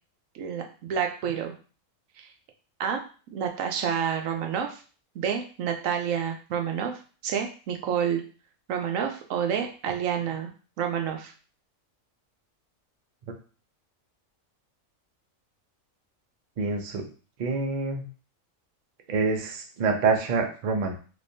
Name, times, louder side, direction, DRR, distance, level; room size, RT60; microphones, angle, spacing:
voice 1, 0.3-1.5 2.2-2.3 2.8-3.0 3.3-4.8 5.1-8.2 8.7-10.5 10.8-11.3, right 8 dB, 80° right, 4 dB, 1.0 m, -29 dB
voice 2, 16.6-17.0 17.4-18.1 19.1-20.9, right 4 dB, 50° right, 3 dB, 0.5 m, -26 dB
3.5 x 3.0 x 2.6 m, 0.38 s
omnidirectional pair, 1.4 m